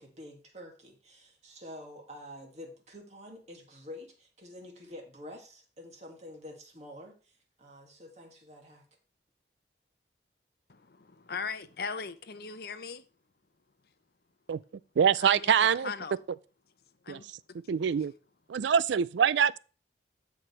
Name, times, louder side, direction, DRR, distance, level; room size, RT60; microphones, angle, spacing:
voice 1, 0.0-7.3 7.6-8.8, left 1 dB, 40° right, 2.2 m, -48 dB
voice 2, 10.7-13.0 15.2-16.1 17.0-17.3, left 5 dB, 55° left, 0.7 m, -39 dB
voice 3, 15.0-15.9 17.1-17.2 17.7-18.1 18.5-19.6, right 7 dB, 80° right, 0.4 m, -24 dB
13.5 x 5.1 x 3.3 m
head